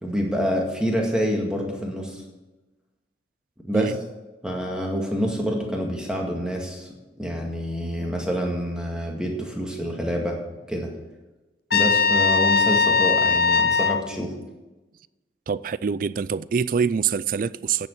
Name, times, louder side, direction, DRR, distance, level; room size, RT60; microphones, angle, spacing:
voice 1, 0.0-2.2 3.6-3.9 4.4-6.9 7.2-10.4 10.7-10.9 11.7-14.3, equal, 5° right, 1.9 m, -27 dB
Trumpet, 11.7-14.0, left 5 dB, 55° left, 0.7 m, -19 dB
voice 2, 15.5-17.9, right 6 dB, 45° right, 0.3 m, -25 dB
10.0 x 7.1 x 8.1 m
head